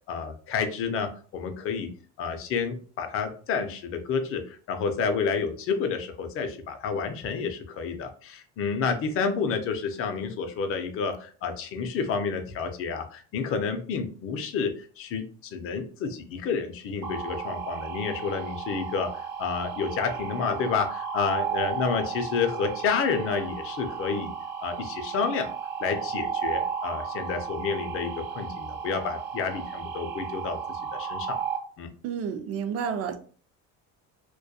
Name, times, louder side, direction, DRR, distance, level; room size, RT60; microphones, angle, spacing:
voice 1, 0.1-1.9 2.2-24.3 24.6-25.5 25.8-30.6 30.9-31.4 31.8-31.9, left 5 dB, 45° left, 6 dB, 0.5 m, -30 dB
sound 1, 17.0-31.6, right 7 dB, 70° right, 0.8 m, -34 dB
voice 2, 32.0-33.2, right 7 dB, 50° right, 8 dB, 0.4 m, -30 dB
2.2 x 2.2 x 2.7 m, 0.42 s
cardioid pair, 130°, 32 cm